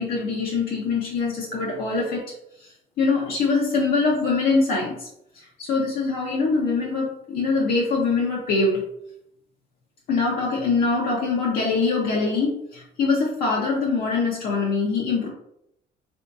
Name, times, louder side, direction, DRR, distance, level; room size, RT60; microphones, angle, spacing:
voice 1, 0.0-2.3 2.6-2.7 3.0-5.1 5.3-8.8 10.1-15.3, left 4 dB, 60° left, -3 dB, 0.7 m, -23 dB
3.6 x 2.7 x 2.3 m, 0.76 s
cardioid pair, 110°, 17 cm